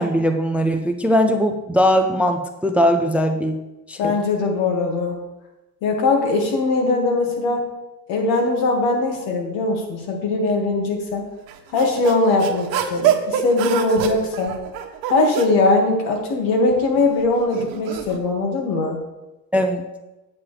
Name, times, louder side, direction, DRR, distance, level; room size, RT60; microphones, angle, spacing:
voice 1, 0.0-3.6 3.9-4.1 19.5-19.8, equal, 5° right, 7 dB, 0.3 m, -19 dB
voice 2, 4.0-5.1 5.8-7.6 8.1-11.2 11.7-14.5 15.1-19.0, left 3 dB, 85° left, 2 dB, 2.0 m, -20 dB
sound 1, 11.5-15.6 16.5-18.2, right 9 dB, 70° right, 1.0 m, -25 dB
8.7 x 8.4 x 3.3 m, 1.0 s
cardioid pair, 145°, 36 cm